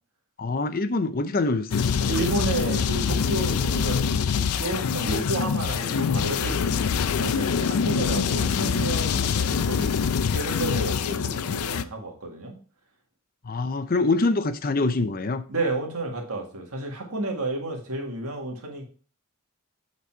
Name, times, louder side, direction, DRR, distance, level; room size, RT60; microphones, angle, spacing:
voice 1, 0.4-2.0 13.4-15.4, left 3 dB, 40° left, 0.6 m, -25 dB
sound 1, 1.7-11.8, left 6 dB, 85° left, 0.4 m, -25 dB
voice 2, 2.0-10.0 10.3-12.6 15.5-18.8, right 2 dB, 80° right, 1.9 m, -31 dB
8.2 x 4.1 x 4.4 m
head